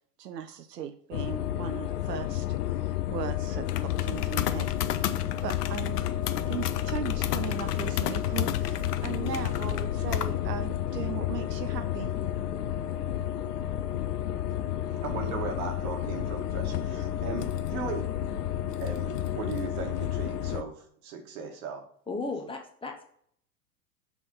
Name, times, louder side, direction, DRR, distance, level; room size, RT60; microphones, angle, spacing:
voice 1, 0.2-5.2 5.4-6.0 6.5-12.1, right 9 dB, 85° right, 9 dB, 0.6 m, -38 dB
sound 1, 1.1-20.6, left 12 dB, 75° left, 0.6 m, -30 dB
voice 2, 14.9-18.0 18.8-21.8, right 5 dB, 60° right, 3 dB, 1.8 m, -37 dB
voice 3, 22.1-23.0, left 3 dB, 10° left, 3 dB, 0.7 m, -35 dB
6.1 x 3.4 x 5.4 m, 0.63 s
hypercardioid pair, 95°, 47 cm